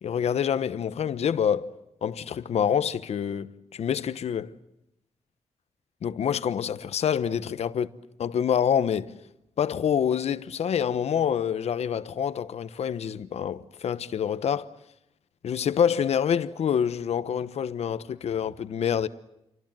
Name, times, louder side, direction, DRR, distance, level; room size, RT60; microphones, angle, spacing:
voice 1, 0.0-1.7 2.0-4.5 6.0-7.9 8.2-9.1 9.6-14.7 15.4-19.1, left 8 dB, 75° left, 1.1 m, -26 dB
29.0 x 25.0 x 7.6 m
wide cardioid pair, 125°, 11 cm